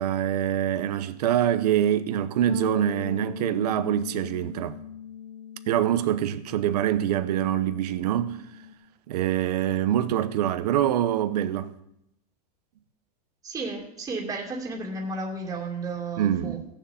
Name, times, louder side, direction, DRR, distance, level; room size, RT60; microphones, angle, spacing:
voice 1, 0.0-4.8 5.7-8.4 9.1-11.7 16.2-16.7, right 11 dB, 75° right, 1.1 m, -25 dB
Bass guitar, 2.5-8.7, left 9 dB, 80° left, 2.1 m, -40 dB
voice 2, 13.4-16.6, right 3 dB, 15° right, 2.6 m, -33 dB
16.0 x 7.3 x 7.2 m
supercardioid pair, 145°, 21 cm